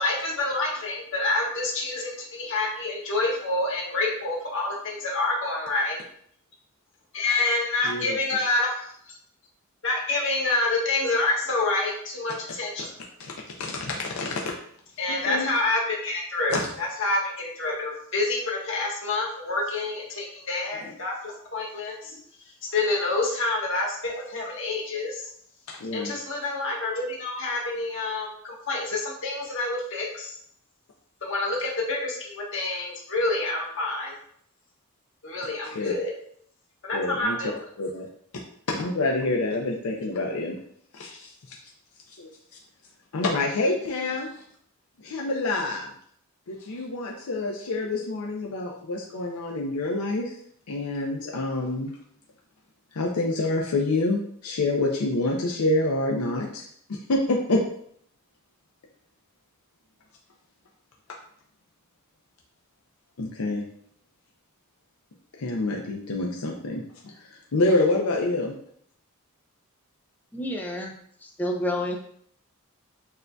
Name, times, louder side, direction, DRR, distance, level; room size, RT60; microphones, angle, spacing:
voice 1, 0.0-6.0 7.1-8.9 9.8-12.9 15.0-22.2 22.7-25.3 25.9-30.3 31.2-34.1 35.2-36.1 36.8-37.6, left 2 dB, 60° left, -3 dB, 1.2 m, -27 dB
voice 2, 13.6-14.5 15.1-15.5 16.5-16.7 25.8-26.1 35.7-35.9 36.9-37.4 37.8-38.1 38.7-40.6 40.9-41.6 42.2-42.3 43.1-44.3 45.0-45.9 46.5-50.4 50.7-51.9 52.9-56.6 56.9-57.6 63.2-63.6 65.4-66.8 67.2-68.5, left 2 dB, 75° left, 0 dB, 0.5 m, -27 dB
voice 3, 70.3-70.9 71.2-72.0, equal, 10° left, 1 dB, 0.4 m, -29 dB
6.4 x 2.6 x 2.2 m, 0.65 s
head